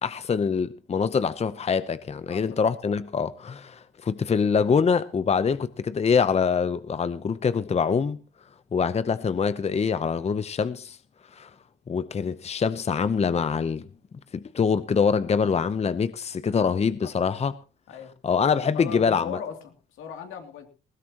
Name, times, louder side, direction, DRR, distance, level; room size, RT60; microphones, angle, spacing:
voice 1, 0.0-8.2 8.7-11.0 11.3-11.5 11.9-13.9 14.3-17.5 18.2-19.4, left 6 dB, 30° left, 0.8 m, -24 dB
voice 2, 18.7-20.7, left 7 dB, 85° left, 2.9 m, -38 dB
20.0 x 16.0 x 3.0 m
cardioid pair, 90°, 20 cm